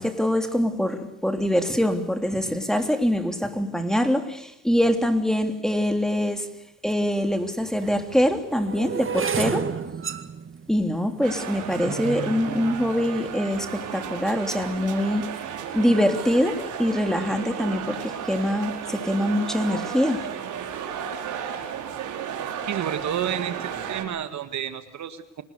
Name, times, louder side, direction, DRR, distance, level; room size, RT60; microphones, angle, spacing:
voice 1, 0.0-6.5 6.8-9.7 10.7-15.3 15.7-20.2, equal, ahead, 6 dB, 3.5 m, -24 dB
sound 1, 6.9-7.0 7.7-13.9 14.6-14.9 15.2-15.6, right 6 dB, 45° right, 2.0 m, -32 dB
sound 2, 11.2-24.0, right 8 dB, 85° right, 5.1 m, -34 dB
voice 2, 22.7-25.4, right 10 dB, 70° right, 10 dB, 1.8 m, -30 dB
28.5 x 19.5 x 6.9 m, 0.84 s
cardioid pair, 90°, 30 cm